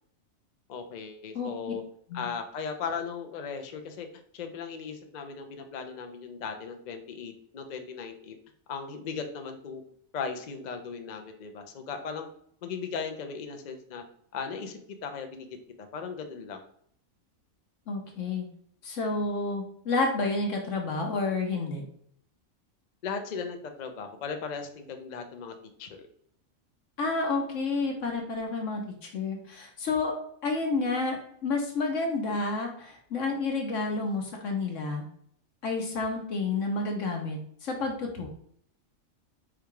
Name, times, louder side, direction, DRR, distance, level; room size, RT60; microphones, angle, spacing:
voice 1, 0.7-1.8 2.1-4.1 4.3-8.4 8.7-9.8 10.1-12.3 12.6-14.0 14.3-15.5 15.9-16.6 23.0-25.5 25.8-26.0, left 5 dB, 50° left, 5 dB, 0.5 m, -37 dB
voice 2, 1.3-1.7 2.1-2.2 17.9-18.5 18.8-21.8 27.0-30.2 30.4-31.2 31.4-35.0 35.6-38.3, left 3 dB, 65° left, 1 dB, 1.2 m, -30 dB
4.9 x 2.3 x 4.6 m, 0.64 s
omnidirectional pair, 1.4 m